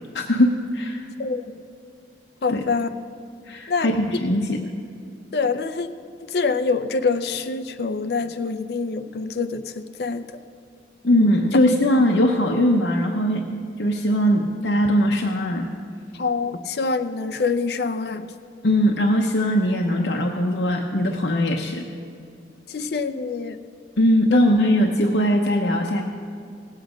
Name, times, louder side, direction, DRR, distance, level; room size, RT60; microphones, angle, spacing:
voice 1, 0.1-1.0 2.5-2.6 3.5-4.7 11.0-13.4 13.8-15.7 18.6-21.8 24.0-26.0, equal, 80° left, 1 dB, 0.9 m, -20 dB
voice 2, 2.4-2.9 3.7-3.9 5.3-5.9 6.3-10.2 16.2-18.3 22.7-23.6 24.3-24.4, left 4 dB, 60° left, 10 dB, 0.5 m, -25 dB
17.5 x 8.2 x 5.1 m, 2.4 s
head